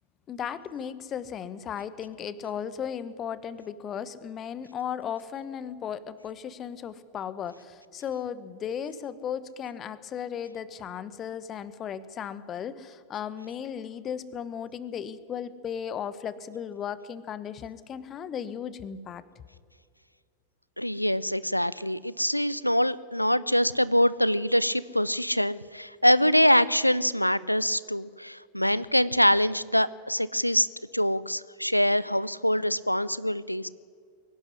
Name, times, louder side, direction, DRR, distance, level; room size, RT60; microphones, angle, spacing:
voice 1, 0.3-19.2, left 8 dB, 30° left, 16 dB, 1.1 m, -36 dB
voice 2, 20.8-30.7 30.9-33.7, equal, 90° left, 19 dB, 0.5 m, -24 dB
22.5 x 11.5 x 9.8 m, 2.1 s
figure-of-eight pair, 90°, 0 cm